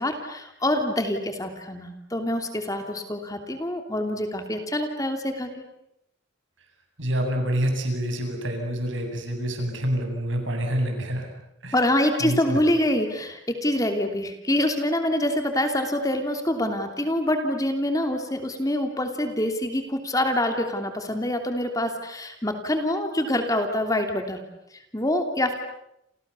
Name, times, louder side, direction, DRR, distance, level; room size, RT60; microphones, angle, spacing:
voice 1, 0.0-5.6 11.7-24.4 24.7-25.5, left 1 dB, 15° left, 5 dB, 2.9 m, -26 dB
voice 2, 7.0-11.3 11.6-11.8 12.2-12.6, equal, 75° right, 3 dB, 8.0 m, -27 dB
29.5 x 29.0 x 7.0 m, 0.81 s
head